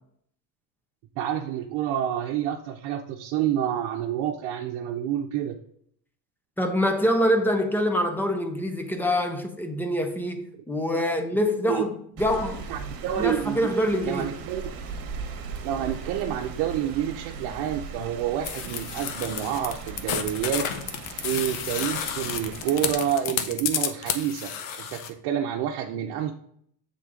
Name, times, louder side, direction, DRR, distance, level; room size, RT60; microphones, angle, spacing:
voice 1, 1.2-5.6 11.0-11.1 11.6-11.8 12.7-13.7 14.0-14.6 15.6-20.7 21.1-24.5 24.8-26.3, right 10 dB, 75° right, 0.7 m, -28 dB
voice 2, 6.6-12.7 13.2-14.3, equal, 5° left, 0.4 m, -25 dB
Rain, 12.2-22.9, right 5 dB, 60° right, 1.2 m, -39 dB
sound 1, 18.4-25.1, left 8 dB, 85° left, 0.8 m, -31 dB
7.9 x 3.9 x 3.7 m
cardioid pair, 150°, 40 cm